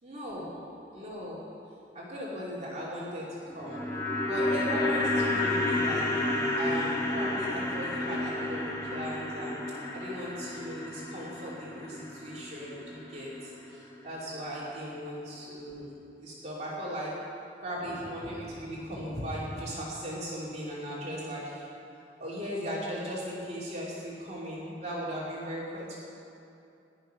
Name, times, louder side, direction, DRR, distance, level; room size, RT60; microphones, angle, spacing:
voice 1, 0.0-0.5 0.9-1.4 1.9-3.8 4.2-6.1 6.5-15.9 16.2-17.1 17.6-21.7 22.2-25.9, equal, 35° right, -7 dB, 2.8 m, -37 dB
sound 1, 3.4-13.7 14.0-14.1, left 2 dB, 15° left, 1.6 m, -31 dB
16.0 x 11.0 x 5.7 m, 2.7 s
head